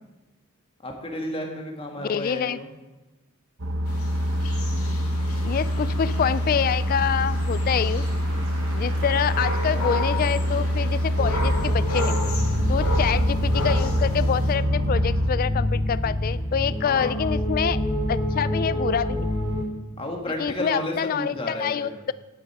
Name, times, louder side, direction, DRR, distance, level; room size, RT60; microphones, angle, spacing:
voice 1, 0.8-2.7 5.7-5.9 12.6-12.9 16.8-17.1 20.0-22.0, left 1 dB, 25° left, 2 dB, 1.7 m, -32 dB
voice 2, 2.0-2.6 5.4-8.1 8.7-12.2 12.7-17.8 18.1-19.3 20.4-22.1, left 7 dB, 45° left, 17 dB, 0.3 m, -26 dB
sound 1, 3.6-15.3, equal, 65° right, 1.1 m, -25 dB
sound 2, 3.9-14.5, left 2 dB, 90° left, 2.0 m, -34 dB
sound 3, 11.2-19.6, left 1 dB, 15° right, 3.1 m, -26 dB
11.5 x 8.8 x 4.8 m, 1.1 s
head